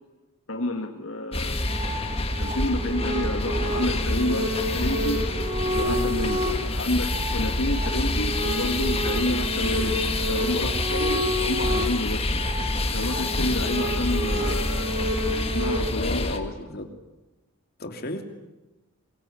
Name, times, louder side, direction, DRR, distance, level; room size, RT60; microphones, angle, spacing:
voice 1, 0.5-1.6 2.4-5.2 5.7-6.4 6.7-10.0 10.2-12.3 12.9-15.0 15.5-16.5, left 1 dB, 65° left, 5 dB, 1.9 m, -29 dB
sound 1, 1.3-16.4, left 2 dB, 25° left, 1.7 m, -27 dB
sound 2, 1.4-15.8, equal, 30° right, 5.1 m, -30 dB
voice 2, 15.9-16.9 17.8-18.2, left 1 dB, 45° left, 5 dB, 2.8 m, -34 dB
24.5 x 22.5 x 9.8 m, 1.0 s
head